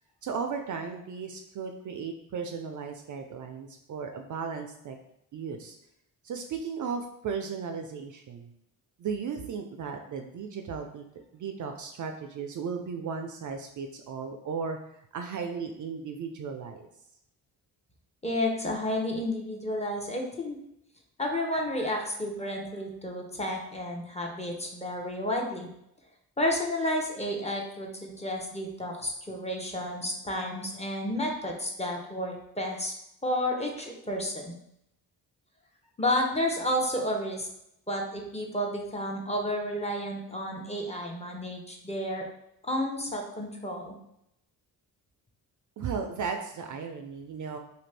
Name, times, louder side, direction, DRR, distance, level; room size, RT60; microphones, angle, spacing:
voice 1, 0.2-5.0 5.3-5.8 6.2-8.5 9.0-11.0 11.3-14.8 15.1-16.8 45.8-47.6, right 5 dB, 50° right, 5 dB, 0.4 m, -35 dB
voice 2, 18.2-20.6 21.2-25.7 26.4-32.9 33.2-34.5 36.0-37.5 37.9-42.2 42.6-44.0, left 1 dB, 15° left, 0 dB, 0.7 m, -31 dB
2.6 x 2.5 x 3.3 m, 0.79 s
supercardioid pair, 60°, 41 cm